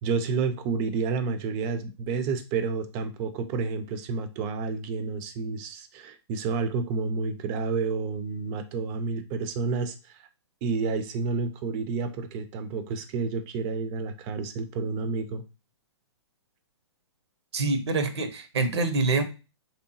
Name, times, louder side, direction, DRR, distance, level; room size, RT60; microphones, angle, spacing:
voice 1, 0.0-10.3 10.6-15.4, right 4 dB, 30° right, 9 dB, 0.5 m, -30 dB
voice 2, 17.5-19.2, right 3 dB, 65° right, 8 dB, 0.7 m, -25 dB
3.3 x 2.9 x 2.7 m, 0.30 s
figure-of-eight pair, 125°, 15 cm